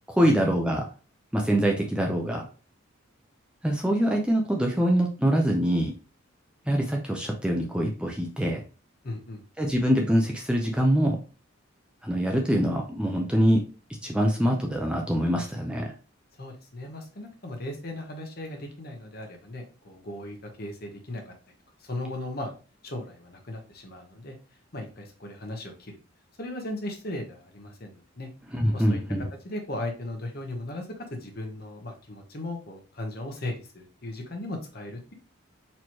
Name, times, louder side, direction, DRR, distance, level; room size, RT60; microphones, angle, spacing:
voice 1, 0.1-0.9 1.3-2.4 3.6-5.9 6.7-8.6 9.6-11.2 12.0-13.6 14.0-15.9 28.5-29.3, equal, 5° right, 1 dB, 0.4 m, -24 dB
voice 2, 9.0-9.4 16.4-21.3 21.8-22.5 22.8-24.4 24.7-26.0 26.4-28.3 28.7-29.0 29.4-35.1, left 1 dB, 45° left, 2 dB, 0.9 m, -37 dB
4.2 x 3.0 x 3.0 m, 0.35 s
head